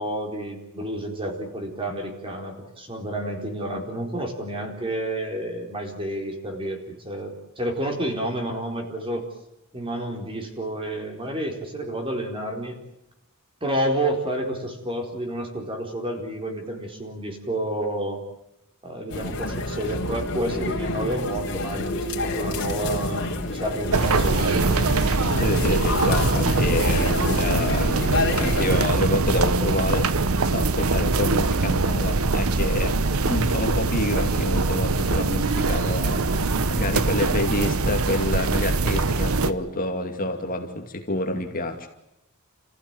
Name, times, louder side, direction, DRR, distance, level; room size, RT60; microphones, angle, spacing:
voice 1, 0.0-9.3 9.7-12.8 13.6-18.2 18.8-24.8, right 1 dB, 25° right, 2 dB, 4.4 m, -30 dB
sound 1, 19.1-28.9, left 2 dB, 60° left, 3.9 m, -28 dB
sound 2, 23.9-39.5, right 3 dB, 80° right, 1.1 m, -23 dB
voice 2, 25.4-30.1 30.5-41.9, left 1 dB, 40° left, 4 dB, 2.5 m, -28 dB
29.5 x 15.5 x 9.2 m, 0.85 s
head